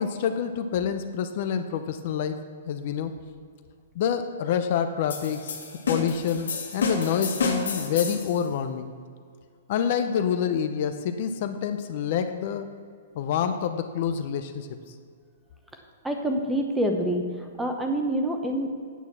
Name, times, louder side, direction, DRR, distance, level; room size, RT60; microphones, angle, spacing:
voice 1, 0.0-2.4 2.7-3.1 4.0-5.5 5.9-8.9 9.7-12.7 13.1-14.7, left 8 dB, 45° left, 8 dB, 0.6 m, -27 dB
sound 1, 5.1-8.4, left 4 dB, 90° left, 1.8 m, -30 dB
voice 2, 16.0-17.2 17.6-18.7, right 1 dB, 5° right, 3 dB, 0.9 m, -26 dB
9.1 x 6.2 x 7.3 m, 2.1 s
hypercardioid pair, 160°, 0 cm